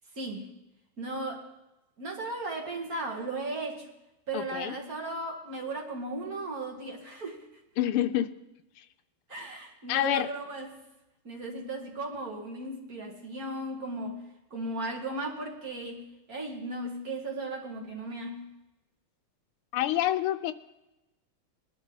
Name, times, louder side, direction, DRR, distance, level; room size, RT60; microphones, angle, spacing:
voice 1, 0.1-0.5 1.0-1.5 2.0-3.9 4.3-7.5 9.3-10.8 11.2-14.2 14.5-18.4, right 2 dB, 45° right, 0 dB, 2.4 m, -36 dB
voice 2, 4.3-4.8 7.8-8.3 8.8-8.9 9.9-10.3 19.7-20.5, left 13 dB, 90° left, 11 dB, 1.6 m, -27 dB
21.0 x 11.5 x 4.0 m, 0.98 s
omnidirectional pair, 2.4 m